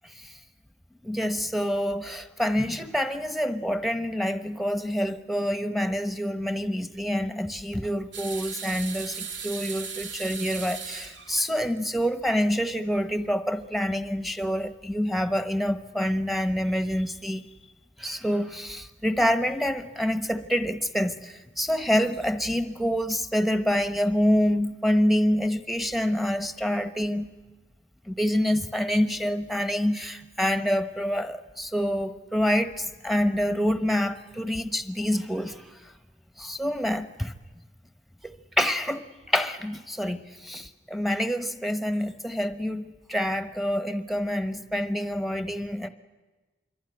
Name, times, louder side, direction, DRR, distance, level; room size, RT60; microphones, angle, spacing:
voice 1, 1.0-17.4 18.0-27.3 28.1-35.6 36.4-37.3 38.2-45.9, equal, ahead, 1.0 m, -27 dB
sound 1, 8.1-12.0 12.4-12.5 13.6-13.7, right 6 dB, 80° right, 2.3 m, -37 dB
26.0 x 23.0 x 9.7 m
head